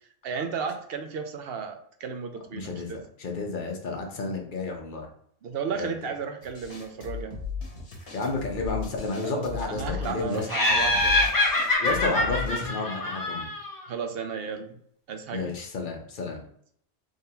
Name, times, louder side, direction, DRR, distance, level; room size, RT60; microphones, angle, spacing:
voice 1, 0.2-3.0 5.4-7.4 9.2-11.3 13.9-14.8 15.1-15.5, right 6 dB, 65° right, 6 dB, 0.8 m, -34 dB
voice 2, 2.5-5.1 5.8-5.9 8.1-10.5 11.8-13.5 15.3-16.4, left 3 dB, 50° left, 1 dB, 0.9 m, -31 dB
sound 1, 6.4-12.7, left 6 dB, 75° left, 1.2 m, -37 dB
Laughter, 10.5-13.8, left 2 dB, 20° left, 0.7 m, -25 dB
3.6 x 3.5 x 2.8 m, 0.65 s
omnidirectional pair, 1.1 m